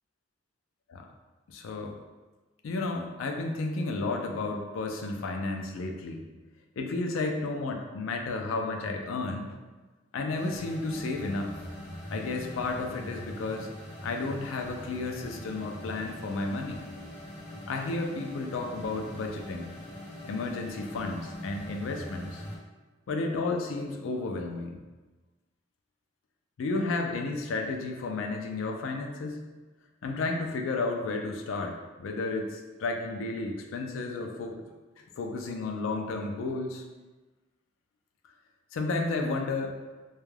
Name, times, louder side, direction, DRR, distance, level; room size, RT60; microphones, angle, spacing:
voice 1, 1.5-2.0 2.6-6.2 6.8-9.5 10.1-11.5 12.1-13.7 14.0-16.8 17.7-19.7 20.2-22.4 23.1-24.8 26.6-29.4 30.0-34.6 35.0-36.8 38.7-39.7, left 3 dB, 80° left, 3 dB, 0.3 m, -32 dB
sound 1, 10.4-22.6, equal, 25° left, 0.6 m, -42 dB
2.3 x 2.1 x 3.1 m, 1.2 s
head